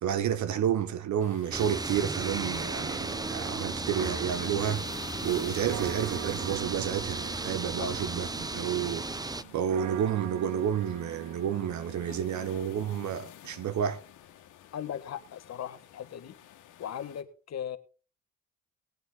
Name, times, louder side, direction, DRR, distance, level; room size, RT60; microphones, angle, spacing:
voice 1, 0.0-4.8 5.2-14.0, right 9 dB, 70° right, 1.3 m, -30 dB
sound 1, 1.2-17.2, left 11 dB, 85° left, 1.7 m, -51 dB
sound 2, 1.5-9.4, right 2 dB, 15° right, 0.8 m, -35 dB
sound 3, 3.0-12.6, right 15 dB, 90° right, 0.7 m, -44 dB
voice 2, 14.7-16.3 16.8-17.8, left 9 dB, 60° left, 1.4 m, -38 dB
19.5 x 8.4 x 3.9 m
cardioid pair, 90°, 30 cm